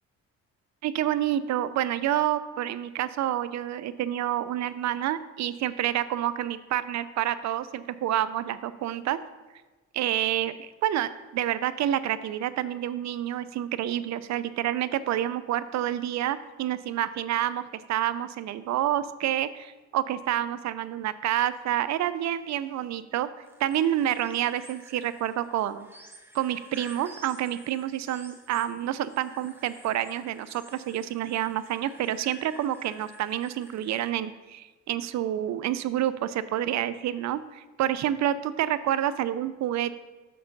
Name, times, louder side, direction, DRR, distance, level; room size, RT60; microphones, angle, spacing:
voice 1, 0.8-9.2 9.9-17.6 17.9-23.3 23.6-25.9 26.3-39.9, right 12 dB, 65° right, 15 dB, 0.4 m, -28 dB
sound 1, 23.4-34.1, right 1 dB, 5° right, 1.1 m, -52 dB
6.8 x 6.6 x 3.9 m, 1.2 s
cardioid pair, 90°, 30 cm